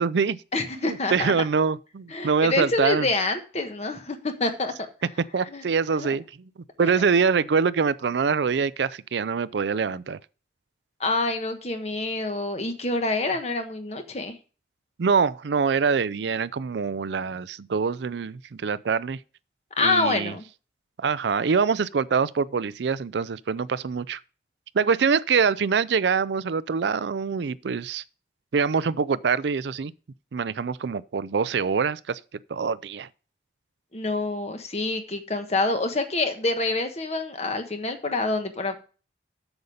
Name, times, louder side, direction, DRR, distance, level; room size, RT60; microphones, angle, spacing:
voice 1, 0.0-0.4 0.8-3.1 5.3-6.5 6.8-10.2 15.0-19.2 19.8-20.3 21.0-24.2 24.7-28.0 28.5-29.9 30.3-32.2 32.5-33.1, right 5 dB, 75° right, 0.4 m, -24 dB
voice 2, 0.5-1.3 2.1-4.7 5.4-5.6 6.0-6.1 6.8-7.0 11.0-14.4 19.8-20.5 33.9-38.8, left 3 dB, 35° left, 1.3 m, -27 dB
8.0 x 7.0 x 5.1 m
head